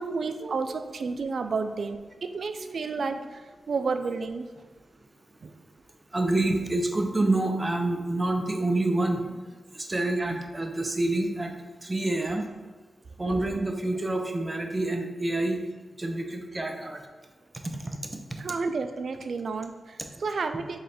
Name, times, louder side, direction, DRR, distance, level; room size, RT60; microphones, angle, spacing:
voice 1, 0.0-4.5 5.4-5.5 18.4-20.8, right 4 dB, 70° right, 8 dB, 0.3 m, -31 dB
voice 2, 6.1-9.3 9.7-11.6 11.8-12.4 13.2-15.6 16.0-17.0 17.7-18.4, right 2 dB, 25° right, 4 dB, 0.6 m, -27 dB
3.7 x 3.1 x 4.2 m, 1.4 s
cardioid pair, 80°, 0 cm